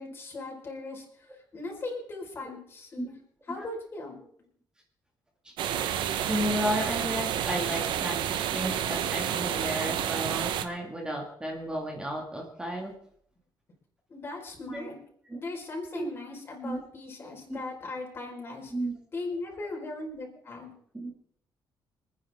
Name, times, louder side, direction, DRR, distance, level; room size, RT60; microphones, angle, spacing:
voice 1, 0.0-3.2 3.5-4.2 14.1-15.0 15.3-18.7 19.1-20.7, left 2 dB, 30° left, -1 dB, 4.7 m, -39 dB
sound 1, 5.6-10.7, right 10 dB, 85° right, 1.1 m, -30 dB
voice 2, 6.3-8.2 8.5-12.9 14.7-14.9 15.3-15.4 15.9-16.1 16.6-16.8 17.2-17.6 18.7-18.9 20.9-21.1, equal, 10° right, 0 dB, 2.3 m, -33 dB
27.0 x 9.8 x 3.7 m, 0.63 s
cardioid pair, 160°, 8 cm